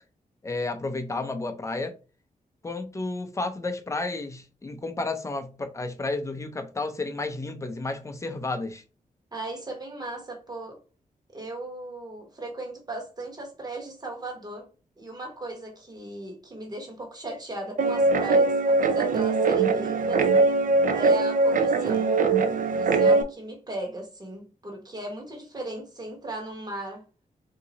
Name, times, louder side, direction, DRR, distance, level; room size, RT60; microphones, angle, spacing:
voice 1, 0.4-1.9 2.6-8.8, left 3 dB, 20° left, 0.6 m, -32 dB
voice 2, 9.3-10.8 11.3-14.7 15.0-20.3 20.9-22.1 22.8-27.0, right 2 dB, 30° right, 1.4 m, -37 dB
Guitar, 17.8-23.2, right 3 dB, 65° right, 0.6 m, -21 dB
3.7 x 2.8 x 4.0 m
wide cardioid pair, 160°, 15 cm